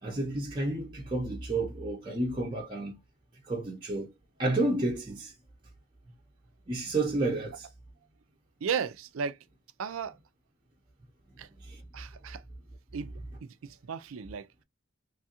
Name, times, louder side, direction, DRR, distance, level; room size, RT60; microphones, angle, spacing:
voice 1, 0.0-3.0 3.4-4.1 4.4-5.3 6.7-7.7 11.6-11.8, right 2 dB, 25° right, 0.6 m, -31 dB
voice 2, 8.6-9.4 9.8-10.2 11.4-11.5 11.9-12.4 12.9-13.1 13.4-14.5, right 6 dB, 80° right, 0.4 m, -35 dB
3.2 x 2.3 x 2.8 m
head